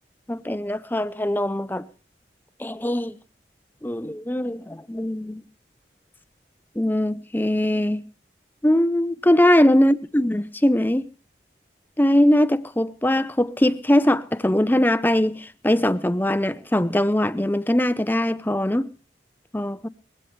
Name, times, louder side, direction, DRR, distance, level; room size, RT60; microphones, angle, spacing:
voice 1, 0.3-1.9 2.6-3.2 3.8-5.4 6.8-8.0 8.6-11.1 12.0-18.9 19.5-19.9, left 1 dB, 10° left, 0.6 m, -21 dB
21.0 x 16.5 x 3.3 m
head